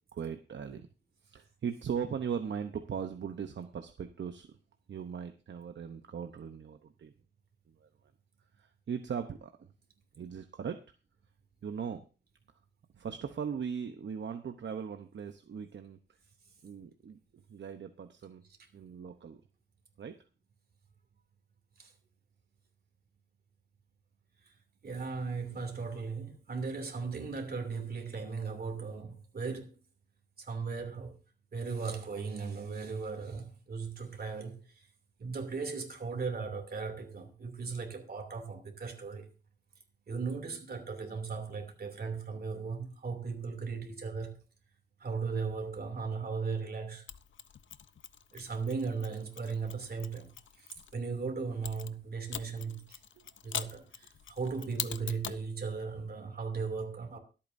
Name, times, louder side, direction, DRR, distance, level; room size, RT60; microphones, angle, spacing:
voice 1, 0.1-0.9 1.2-4.6 4.9-7.1 7.8-7.9 8.6-9.5 10.2-10.8 11.6-12.0 12.9-16.0 16.6-18.4 18.7-19.4 20.0-20.2 53.2-53.3, right 7 dB, 70° right, 0.8 m, -39 dB
voice 2, 24.8-29.8 30.4-31.1 31.5-34.6 35.2-39.3 40.1-44.3 45.0-47.0 48.3-53.0 53.4-57.2, right 5 dB, 55° right, 2.7 m, -37 dB
Mechanisms, 47.1-50.9 51.6-55.5, left 8 dB, 85° left, 0.6 m, -43 dB
23.0 x 8.7 x 2.6 m
wide cardioid pair, 175°, 19 cm